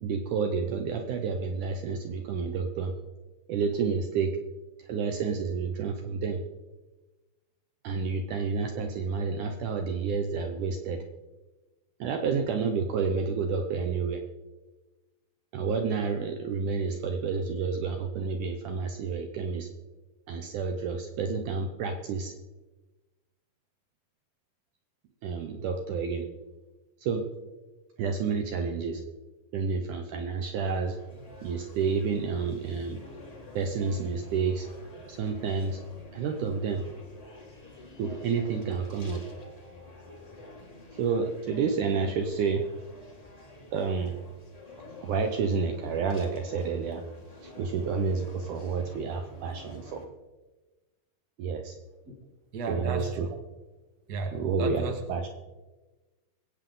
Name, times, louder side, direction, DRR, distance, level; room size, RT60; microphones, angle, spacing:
voice 1, 0.0-2.9 3.5-4.3 4.9-6.4 7.8-11.0 12.0-14.2 15.5-19.7 20.3-22.3 25.2-26.3 27.0-27.2 28.0-29.0 29.5-31.0 31.4-33.0 33.6-34.7 35.1-35.8 36.1-36.8 38.0-39.2 41.0-42.6 43.7-44.1 45.0-47.0 47.4-50.1 51.4-51.7 52.7-53.3 54.3-55.3, right 5 dB, 70° right, 5 dB, 2.1 m, -29 dB
sound 1, 30.3-50.0, left 2 dB, 20° left, 1.1 m, -48 dB
voice 2, 52.5-53.3 54.1-54.9, right 3 dB, 40° right, 3 dB, 1.6 m, -34 dB
22.0 x 8.8 x 3.8 m, 1.2 s
omnidirectional pair, 4.1 m